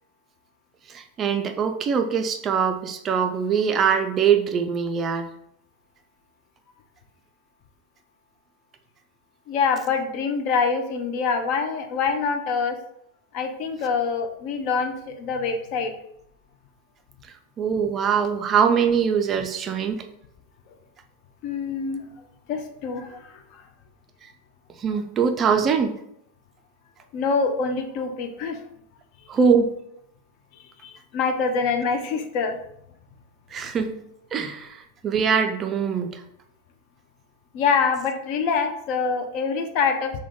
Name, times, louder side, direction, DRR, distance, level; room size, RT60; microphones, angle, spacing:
voice 1, 0.9-5.3 17.2-20.0 24.2-24.3 24.8-26.0 29.3-29.7 33.5-34.0 34.3-36.2, right 6 dB, 25° right, 6 dB, 0.3 m, -23 dB
voice 2, 9.5-12.8 13.3-15.9 21.4-22.1 22.5-23.6 27.1-28.6 30.8-32.6 37.5-40.2, left 5 dB, 45° left, 6 dB, 0.4 m, -25 dB
3.4 x 2.2 x 3.6 m, 0.74 s
figure-of-eight pair, 90°, 0 cm